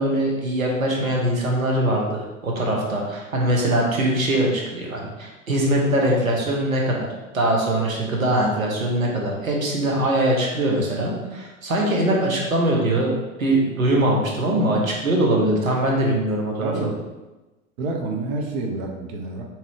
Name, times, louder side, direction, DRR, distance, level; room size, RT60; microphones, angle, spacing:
voice 1, 0.0-7.1 7.3-16.9, right 1 dB, 80° right, -1 dB, 1.0 m, -22 dB
voice 2, 16.6-16.9 17.8-19.4, right 3 dB, 50° right, 2 dB, 0.8 m, -28 dB
3.6 x 2.9 x 3.3 m, 1.1 s
figure-of-eight pair, 90°, 40 cm